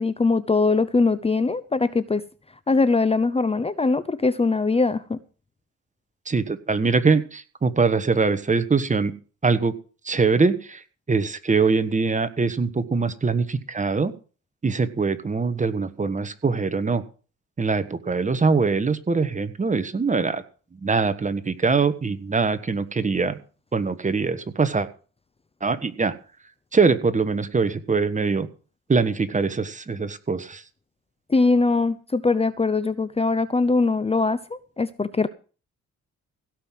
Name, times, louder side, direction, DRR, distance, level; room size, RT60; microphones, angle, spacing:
voice 1, 0.0-2.2 2.7-5.2 31.3-34.4 34.8-35.3, left 3 dB, 20° left, 14 dB, 0.8 m, -21 dB
voice 2, 6.2-9.1 9.4-9.8 10.0-14.1 14.6-17.0 17.6-20.4 20.7-23.4 23.7-24.9 25.6-26.1 26.7-28.5 28.9-30.6, right 4 dB, 25° right, 12 dB, 1.4 m, -23 dB
16.5 x 5.6 x 7.7 m, 0.37 s
cardioid pair, 90°, 30 cm